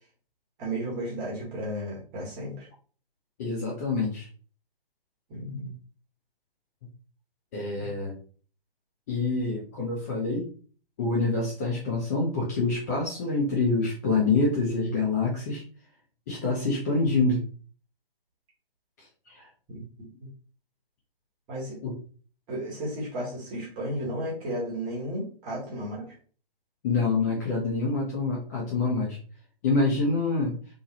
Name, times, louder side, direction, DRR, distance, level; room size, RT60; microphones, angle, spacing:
voice 1, 0.6-2.7 5.3-5.7 7.8-7.9 19.7-20.3 21.5-21.8 22.5-26.1, right 1 dB, 20° right, -4 dB, 1.4 m, -34 dB
voice 2, 3.4-4.3 7.5-8.2 9.1-10.5 11.0-15.6 16.3-17.4 19.0-19.5 21.8-22.0 26.8-29.2 29.6-30.6, left 3 dB, 20° left, -4 dB, 0.6 m, -26 dB
3.6 x 3.4 x 2.9 m, 0.41 s
figure-of-eight pair, 135°, 29 cm